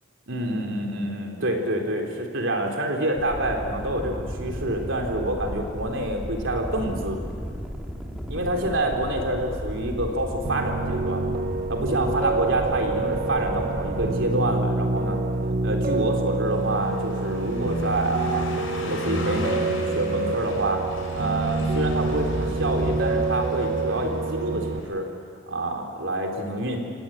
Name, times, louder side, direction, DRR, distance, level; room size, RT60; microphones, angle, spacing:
voice 1, 0.3-7.2 8.3-11.4 11.7-15.2 15.6-18.5 18.9-20.8 21.1-25.1 25.5-26.8, right 1 dB, 70° right, 2 dB, 3.8 m, -27 dB
sound 1, 3.2-14.2, equal, 5° right, 2.4 m, -35 dB
Piano, 10.4-24.8, right 3 dB, 50° right, 0.6 m, -27 dB
Car passing by, 16.4-24.9, left 1 dB, 90° left, 5.6 m, -35 dB
27.5 x 18.5 x 8.8 m, 2.3 s
head